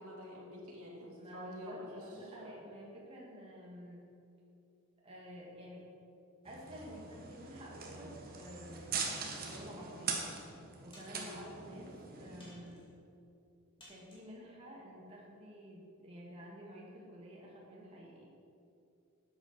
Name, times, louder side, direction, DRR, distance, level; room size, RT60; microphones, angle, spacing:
voice 1, 0.0-2.5 11.1-11.4, equal, 75° right, -4 dB, 2.7 m, -48 dB
voice 2, 1.2-4.1 5.0-5.8 6.4-9.1 9.4-10.2 10.8-12.9 13.9-18.2, equal, 25° right, -4 dB, 2.3 m, -50 dB
sound 1, 6.5-12.5, right 5 dB, 40° right, 1.2 m, -42 dB
sound 2, 9.0-9.5 10.2-10.3 10.9-11.6 12.4-12.9 13.8-14.3, left 1 dB, 20° left, 2.5 m, -59 dB
11.0 x 8.1 x 4.4 m, 2.7 s
head